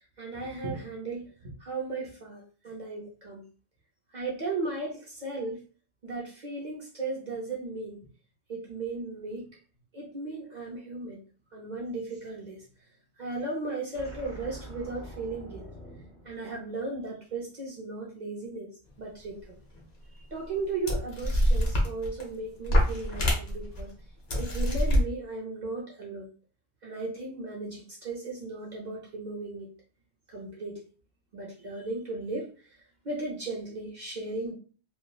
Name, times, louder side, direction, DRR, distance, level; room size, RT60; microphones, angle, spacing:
voice 1, 0.2-3.4 4.1-5.6 6.0-8.0 8.5-9.4 9.9-11.2 11.5-12.7 13.2-15.7 16.2-18.7 19.0-19.6 20.3-23.9 24.4-26.3 26.8-29.7 30.3-30.8 31.3-32.8 33.0-34.5, right 3 dB, 50° right, -3 dB, 0.7 m, -36 dB
sound 1, 13.9-17.3, right 1 dB, 45° left, 1.3 m, -46 dB
sound 2, 19.7-19.8 20.5-20.6 20.9-22.3 22.6-23.8 24.3-25.0, equal, 65° left, 1.0 m, -25 dB
3.0 x 2.3 x 2.2 m, 0.38 s
omnidirectional pair, 1.1 m